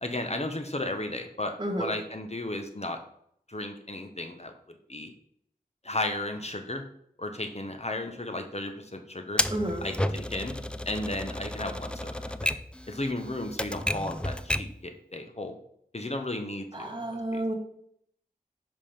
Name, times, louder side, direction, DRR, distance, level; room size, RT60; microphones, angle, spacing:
voice 1, 0.0-3.0 3.5-4.5 4.9-5.1 5.8-6.8 7.2-9.4 9.8-10.5 10.9-12.5 12.9-15.5 15.9-17.4, left 2 dB, 40° left, 5 dB, 1.0 m, -34 dB
voice 2, 1.6-2.0 9.5-9.9 16.7-17.5, right 1 dB, 30° right, 3 dB, 1.7 m, -31 dB
Typewriter, 9.4-14.8, left 1 dB, 5° left, 0.4 m, -32 dB
5.6 x 4.9 x 5.1 m, 0.70 s
wide cardioid pair, 45°, 16 cm